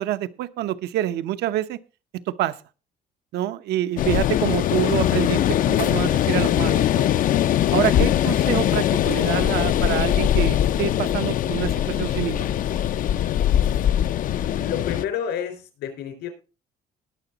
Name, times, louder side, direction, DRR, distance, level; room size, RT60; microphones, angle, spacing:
voice 1, 0.0-1.8 2.3-2.6 3.3-7.1 7.7-12.5, right 12 dB, 80° right, 13 dB, 0.8 m, -26 dB
sound 1, 4.0-15.1, left 11 dB, 55° left, 0.5 m, -21 dB
voice 2, 14.5-16.3, left 8 dB, 80° left, 7 dB, 4.3 m, -29 dB
20.0 x 6.9 x 3.9 m, 0.33 s
cardioid pair, 110°, 17 cm